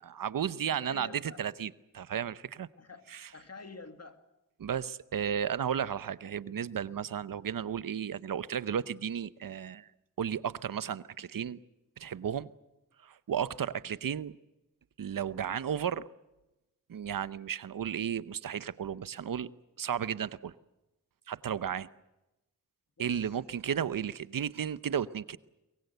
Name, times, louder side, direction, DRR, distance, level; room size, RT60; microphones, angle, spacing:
voice 1, 0.0-2.7 3.1-3.3 4.6-9.9 10.2-11.6 12.0-12.5 13.0-14.4 15.0-16.1 16.9-19.5 19.8-20.5 21.3-21.9 23.0-25.4, right 8 dB, 85° right, 0.8 m, -34 dB
voice 2, 0.7-1.5 2.8-3.1 3.3-4.2 23.0-23.4 23.7-23.8, left 4 dB, 50° left, 2.3 m, -48 dB
23.0 x 22.0 x 8.0 m
cardioid pair, 50°, 33 cm